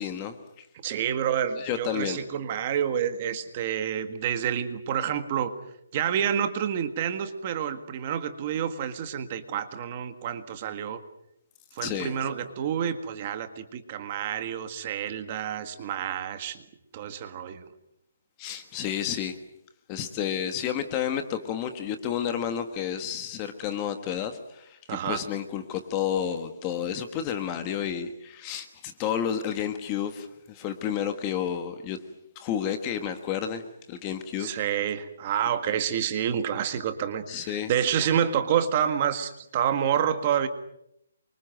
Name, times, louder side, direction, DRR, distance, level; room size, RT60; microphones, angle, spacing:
voice 1, 0.0-0.7 1.5-2.2 11.8-12.2 18.4-19.4 19.9-32.0 32.3-33.6 33.9-34.6 37.3-37.7, left 9 dB, 15° left, 8 dB, 1.4 m, -31 dB
voice 2, 0.8-5.5 5.9-11.0 11.7-16.6 16.9-17.7 24.9-25.2 34.4-40.5, right 9 dB, 25° right, 9 dB, 1.7 m, -28 dB
28.0 x 25.0 x 7.8 m, 0.77 s
hypercardioid pair, 180°, 0 cm